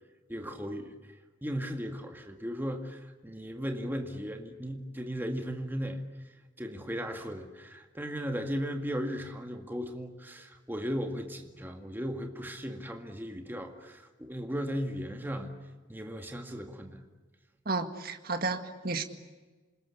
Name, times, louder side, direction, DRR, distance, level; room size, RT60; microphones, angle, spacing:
voice 1, 0.3-1.0 1.4-6.0 6.6-15.5 15.9-17.0, equal, 10° right, 4 dB, 2.0 m, -36 dB
voice 2, 17.7-19.0, right 3 dB, 50° right, 7 dB, 1.9 m, -32 dB
28.0 x 21.0 x 8.4 m, 1.3 s
head